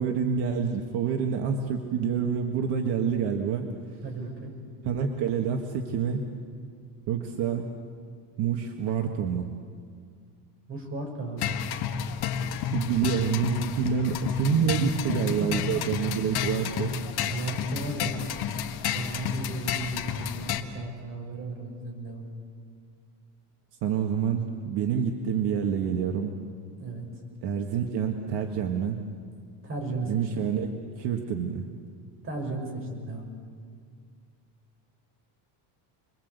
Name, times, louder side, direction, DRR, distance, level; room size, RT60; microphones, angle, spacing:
voice 1, 0.0-3.7 4.8-6.2 7.1-7.7 8.4-9.5 12.7-16.9 23.8-26.3 27.4-29.0 30.1-31.7, right 7 dB, 60° right, 3 dB, 1.9 m, -27 dB
voice 2, 4.0-4.5 10.7-11.5 15.2-15.6 16.9-18.2 18.9-22.3 26.8-27.1 29.6-30.3 32.2-33.3, right 2 dB, 25° right, 1 dB, 6.3 m, -35 dB
sound 1, 11.4-20.6, left 8 dB, 55° left, 1.7 m, -31 dB
30.0 x 22.5 x 8.2 m, 2.1 s
cardioid pair, 165°, 46 cm